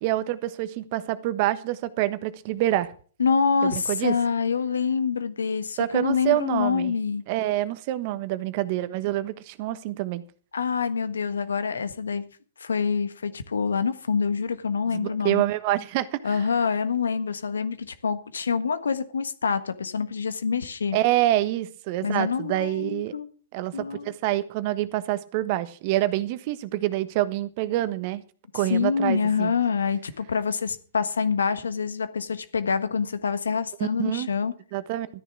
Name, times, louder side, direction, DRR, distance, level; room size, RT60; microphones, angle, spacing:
voice 1, 0.0-2.9 3.6-4.1 5.8-6.9 7.3-10.2 14.9-16.4 20.9-23.1 23.5-28.2 28.5-29.5 33.8-34.3 34.7-35.1, right 15 dB, 45° right, 1.2 m, -26 dB
voice 2, 3.2-7.2 10.5-12.2 12.6-15.4 16.2-21.0 22.0-23.3 23.7-24.1 28.7-34.5, left 5 dB, 80° left, 1.5 m, -26 dB
13.5 x 10.0 x 6.1 m
hypercardioid pair, 125°, 0 cm